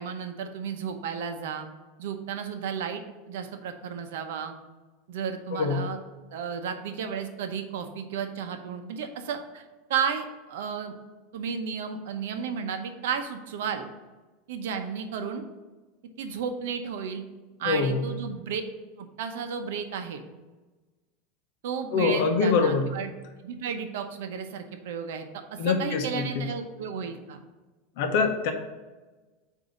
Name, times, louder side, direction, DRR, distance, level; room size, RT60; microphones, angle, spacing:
voice 1, 0.0-1.7 2.0-3.0 3.3-4.6 5.1-6.0 6.3-9.6 9.9-10.9 11.3-13.9 14.5-15.5 16.2-17.2 17.6-18.6 19.0-20.2 21.6-23.1 23.4-25.2 25.5-27.4, right 7 dB, 85° right, 6 dB, 0.8 m, -33 dB
voice 2, 5.5-5.9 17.6-18.1 21.9-22.9 25.6-26.5 28.0-28.5, left 4 dB, 55° left, 5 dB, 0.8 m, -24 dB
8.0 x 2.7 x 5.0 m, 1.2 s
supercardioid pair, 175°, 0 cm